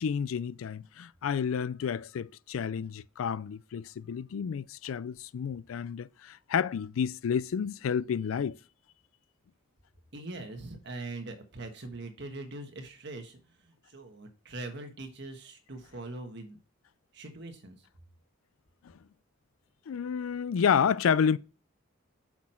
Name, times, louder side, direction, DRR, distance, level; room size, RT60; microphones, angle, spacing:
voice 1, 0.0-8.6 19.9-21.4, left 7 dB, 85° left, 0.4 m, -30 dB
voice 2, 10.1-16.6 17.1-17.9, right 2 dB, 55° right, 1.4 m, -42 dB
6.1 x 6.0 x 4.4 m
head